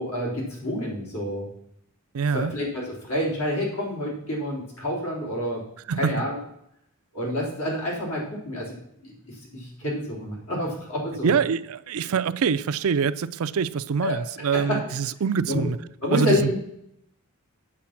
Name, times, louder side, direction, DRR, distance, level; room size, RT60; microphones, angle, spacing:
voice 1, 0.0-1.5 2.3-5.6 6.0-6.4 7.1-8.7 9.0-11.3 14.0-14.2 14.5-14.8 15.5-15.6 16.0-16.6, left 1 dB, 75° left, 3.8 m, -28 dB
voice 2, 2.1-2.5 5.9-6.1 11.2-15.8 16.1-16.5, right 6 dB, 70° right, 0.4 m, -25 dB
8.6 x 7.7 x 5.9 m
head